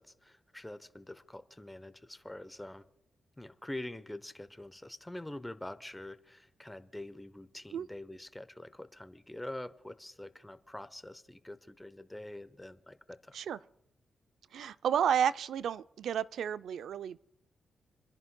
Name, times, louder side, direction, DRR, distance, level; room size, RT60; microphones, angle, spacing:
voice 1, 0.0-2.8 3.4-13.4, left 1 dB, 10° left, 0.8 m, -45 dB
voice 2, 14.5-17.2, right 8 dB, 80° right, 0.4 m, -31 dB
28.5 x 11.0 x 2.2 m
supercardioid pair, 55°, 0 cm